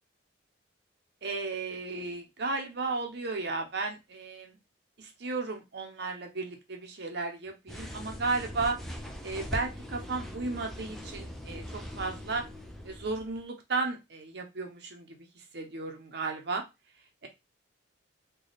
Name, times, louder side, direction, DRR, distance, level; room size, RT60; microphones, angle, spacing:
voice 1, 1.2-4.6 5.0-8.8 9.2-12.5 12.8-16.6 17.2-17.3, right 3 dB, 55° right, 3 dB, 0.6 m, -34 dB
sound 1, 7.7-13.4, equal, ahead, 0.5 m, -41 dB
3.3 x 2.2 x 3.9 m, 0.23 s
head